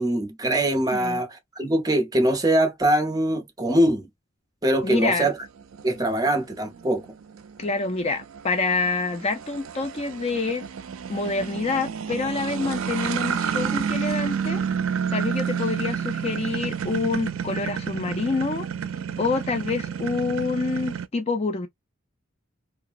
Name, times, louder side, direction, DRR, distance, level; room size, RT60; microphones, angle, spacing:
voice 1, 0.0-4.1 4.6-5.4 5.8-7.1, right 1 dB, 20° right, 0.7 m, -23 dB
voice 2, 4.8-5.3 7.6-10.7 11.1-14.7 15.1-18.7 19.2-21.7, left 3 dB, 30° left, 0.4 m, -27 dB
sound 1, 4.9-21.1, right 7 dB, 80° right, 0.4 m, -30 dB
2.9 x 2.4 x 2.4 m
head